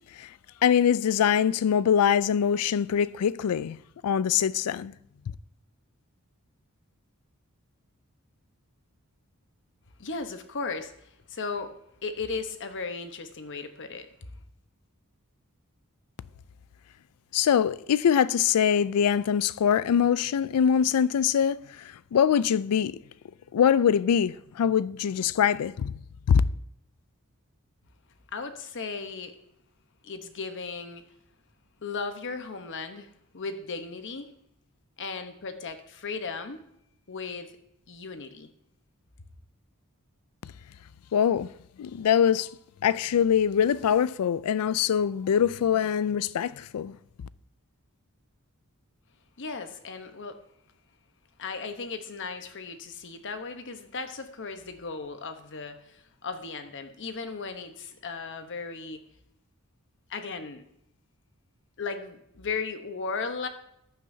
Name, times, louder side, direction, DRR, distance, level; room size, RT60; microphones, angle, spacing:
voice 1, 0.6-3.8 4.0-4.9 17.3-23.0 23.5-26.0 26.3-26.4 41.1-41.5 41.8-42.5 42.8-47.0, left 8 dB, 80° left, 0.4 m, -23 dB
voice 2, 10.0-11.7 12.0-14.3 28.3-29.4 30.0-31.0 31.8-34.3 35.0-36.6 37.1-37.5 37.9-38.5 49.4-50.4 51.4-59.0 60.1-60.6 61.8-63.5, left 4 dB, 55° left, 1.0 m, -36 dB
14.5 x 9.3 x 2.7 m
head